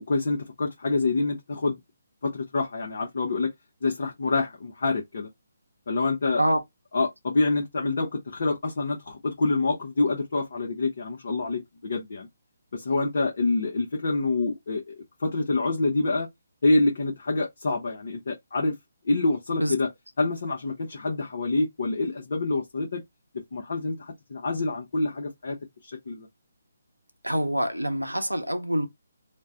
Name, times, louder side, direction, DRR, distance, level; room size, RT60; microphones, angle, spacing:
voice 1, 0.1-1.8 2.2-3.5 3.8-5.3 5.9-6.4 6.9-12.3 12.7-14.9 15.2-16.3 16.6-18.8 19.1-19.9 20.2-23.0 23.5-25.6 25.8-26.3, left 3 dB, 50° left, 0.6 m, -26 dB
voice 2, 27.2-28.9, equal, 85° right, 0.7 m, -25 dB
2.5 x 2.1 x 3.4 m
figure-of-eight pair, 140°, 0 cm